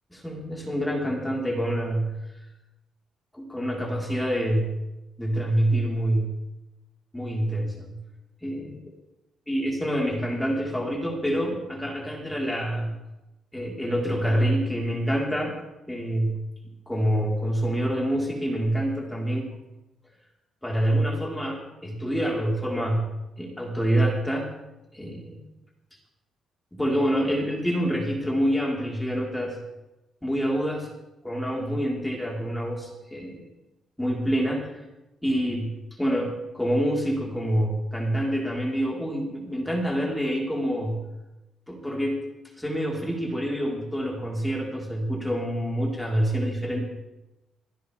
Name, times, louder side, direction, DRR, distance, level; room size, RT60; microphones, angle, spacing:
voice 1, 0.1-2.1 3.3-4.7 5.2-6.3 7.1-7.9 8.4-8.8 9.5-12.9 13.5-15.6 15.9-16.4 16.9-19.5 20.6-23.1 23.4-24.5 24.9-25.4 26.7-29.6 30.2-30.9 31.2-33.4 34.0-34.7 35.2-41.0 41.7-42.2 42.6-46.8, equal, 5° left, -2 dB, 4.8 m, -26 dB
27.0 x 10.5 x 3.7 m, 0.96 s
cardioid pair, 90°, 0 cm